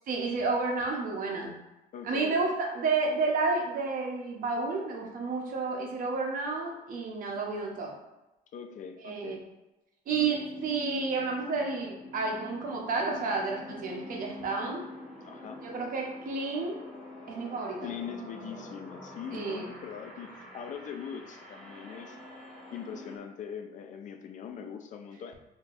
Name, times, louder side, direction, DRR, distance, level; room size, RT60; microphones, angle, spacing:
voice 1, 0.1-1.5 2.0-7.9 9.0-9.4 10.1-14.8 15.6-16.8 17.3-17.9 19.3-19.7, right 4 dB, 55° right, 0 dB, 0.9 m, -31 dB
voice 2, 1.9-2.4 7.3-7.4 8.5-9.4 15.2-15.7 17.8-22.2 22.7-25.3, left 7 dB, 50° left, 6 dB, 0.4 m, -41 dB
sound 1, 10.1-23.2, left 1 dB, 5° left, 0.9 m, -45 dB
4.5 x 2.8 x 2.5 m, 0.98 s
cardioid pair, 110°, 17 cm